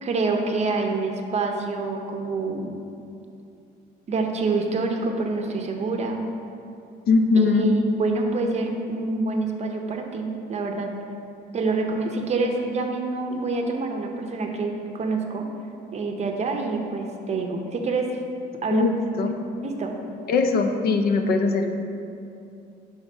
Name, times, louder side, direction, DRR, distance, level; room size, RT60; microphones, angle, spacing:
voice 1, 0.0-2.7 4.1-6.2 7.4-10.9 11.5-15.5 15.9-18.1 18.6-18.9 19.2-19.3 19.6-20.0, right 3 dB, 40° right, 3 dB, 0.7 m, -27 dB
voice 2, 7.1-7.7 18.7-19.4 20.3-21.7, left 4 dB, 60° left, 6 dB, 0.5 m, -21 dB
6.3 x 3.5 x 5.4 m, 2.6 s
cardioid pair, 120°, 18 cm